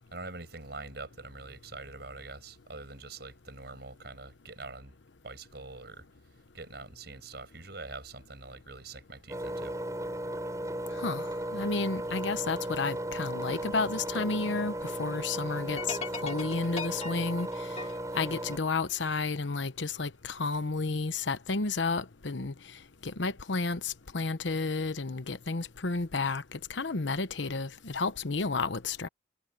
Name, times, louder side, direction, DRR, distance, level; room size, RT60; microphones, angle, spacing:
voice 1, 0.1-4.9 5.2-6.0 6.5-9.8, right 3 dB, 60° right, 8.0 m, -44 dB
Engine, 9.3-18.6, right 1 dB, 15° right, 7.5 m, -36 dB
voice 2, 10.9-17.7 18.1-22.5 23.0-29.1, left 3 dB, 75° left, 1.0 m, -32 dB
sound 1, 15.8-19.1, left 4 dB, 35° left, 3.1 m, -40 dB
head